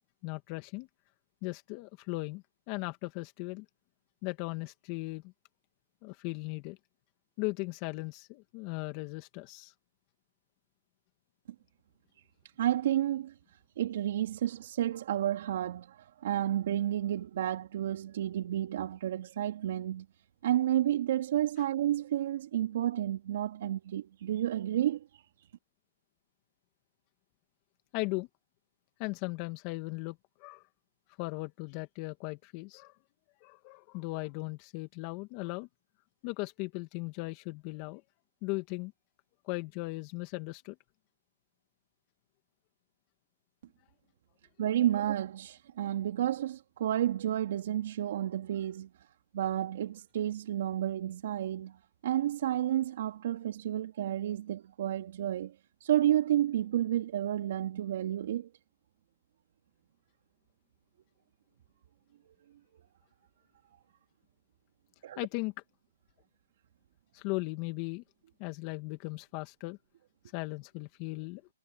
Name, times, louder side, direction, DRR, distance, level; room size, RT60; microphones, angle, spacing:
voice 1, 0.2-0.9 1.4-3.7 4.2-5.3 6.0-6.8 7.4-9.7 27.9-28.3 29.0-30.6 31.2-32.9 33.4-35.7 36.2-38.0 38.4-38.9 39.4-40.8 65.2-65.5 67.1-68.0 68.4-69.8 70.3-71.4, left 24 dB, 30° left, 2.2 m, -37 dB
voice 2, 12.6-13.3 13.8-20.1 20.4-25.2 44.6-48.9 49.3-51.8 52.0-55.6 55.8-58.5 65.0-65.3, right 11 dB, 55° right, 2.2 m, -31 dB
hypercardioid pair, 150°, 0 cm